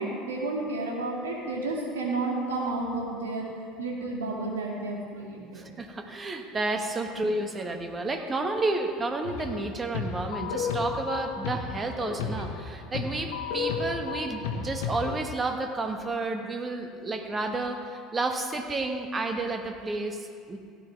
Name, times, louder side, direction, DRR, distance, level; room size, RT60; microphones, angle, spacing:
voice 1, 0.0-3.5 3.8-5.7 7.1-7.2, right 2 dB, 85° right, -1 dB, 2.1 m, -31 dB
voice 2, 5.5-20.6, right 2 dB, 25° right, 5 dB, 1.4 m, -31 dB
sound 1, 9.2-9.6 9.9-15.2, left 5 dB, 75° left, 1.2 m, -33 dB
16.0 x 10.5 x 3.4 m, 2.2 s
hypercardioid pair, 70°, 0 cm